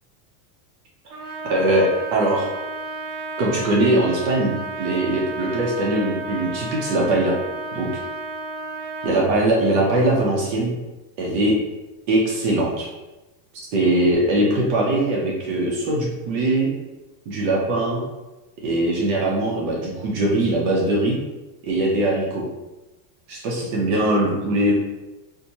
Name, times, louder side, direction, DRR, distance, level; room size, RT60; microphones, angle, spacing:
Trumpet, 1.1-9.3, right 2 dB, 75° right, 0.9 m, -32 dB
voice 1, 1.5-2.5 3.4-7.4 7.7-7.9 9.0-10.8 11.2-11.6 12.1-12.9 13.7-16.7 17.3-18.0 18.6-21.2 21.6-22.4 23.3-24.7, right 1 dB, 45° right, -2 dB, 0.7 m, -21 dB
4.5 x 2.1 x 2.7 m, 1.1 s
supercardioid pair, 170°, 49 cm